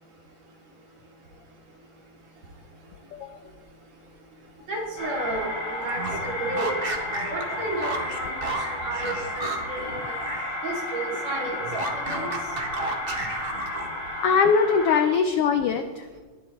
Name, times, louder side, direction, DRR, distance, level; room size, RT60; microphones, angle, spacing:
voice 1, 4.7-5.5 5.8-6.7 7.0-8.3 8.8-10.1 10.6-12.3, right 2 dB, 65° right, -2 dB, 3.8 m, -32 dB
sound 1, 5.0-15.0, left 2 dB, 30° left, 3.6 m, -33 dB
sound 2, 5.8-10.6 10.8-14.1, right 2 dB, 45° right, 0.7 m, -33 dB
voice 2, 14.2-16.2, left 5 dB, 85° left, 7 dB, 1.3 m, -22 dB
20.5 x 11.0 x 3.1 m, 1.4 s
omnidirectional pair, 3.3 m